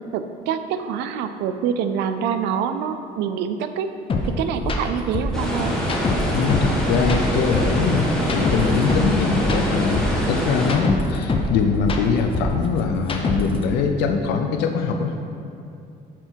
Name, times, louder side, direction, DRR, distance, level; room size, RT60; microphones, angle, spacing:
voice 1, 0.1-3.9 4.4-5.8, right 7 dB, 85° right, 9 dB, 0.5 m, -25 dB
sound 1, 4.1-4.2 4.6-4.8 5.1-6.7 7.0-9.1 9.4-11.5 11.8-13.6, left 3 dB, 30° left, 0.8 m, -24 dB
sound 2, 5.3-10.7, equal, 5° left, 1.5 m, -24 dB
voice 2, 6.3-15.1, left 5 dB, 85° left, 4 dB, 0.6 m, -22 dB
5.9 x 4.5 x 6.2 m, 2.5 s
cardioid pair, 110°, 17 cm